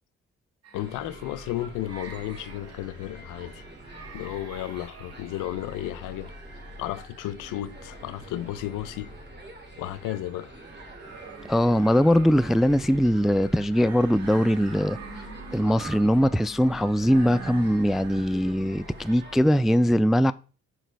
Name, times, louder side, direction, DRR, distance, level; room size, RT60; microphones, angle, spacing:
sound 1, 0.6-19.4, right 5 dB, 55° right, 1.7 m, -46 dB
voice 1, 0.7-3.6 4.1-6.3 6.8-9.1 9.8-10.6, left 14 dB, 90° left, 0.6 m, -33 dB
sound 2, 0.7-19.5, equal, 35° right, 2.4 m, -45 dB
voice 2, 11.5-15.0 15.5-20.3, equal, ahead, 0.3 m, -21 dB
6.2 x 5.0 x 4.5 m
supercardioid pair, 60°, 30 cm